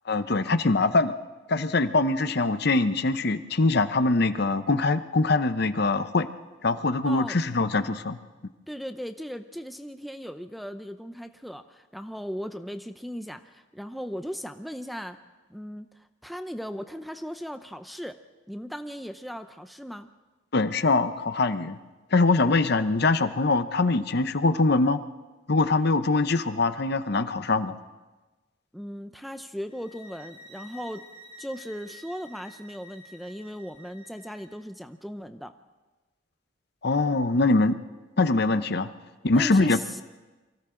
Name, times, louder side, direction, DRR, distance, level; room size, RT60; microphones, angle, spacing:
voice 1, 0.1-1.2 1.5-6.3 6.6-8.2 20.5-21.8 22.1-25.0 25.5-27.8 36.8-37.8 38.2-38.9 39.2-39.8, left 3 dB, 50° left, 11 dB, 0.7 m, -23 dB
voice 2, 7.1-7.4 8.7-15.2 15.5-18.2 18.5-20.1 28.7-31.1 31.4-35.5 39.4-40.0, equal, ahead, 9 dB, 0.6 m, -37 dB
sound 1, 29.7-34.6, left 1 dB, 25° right, 2.0 m, -49 dB
29.5 x 24.0 x 3.8 m, 1.2 s
head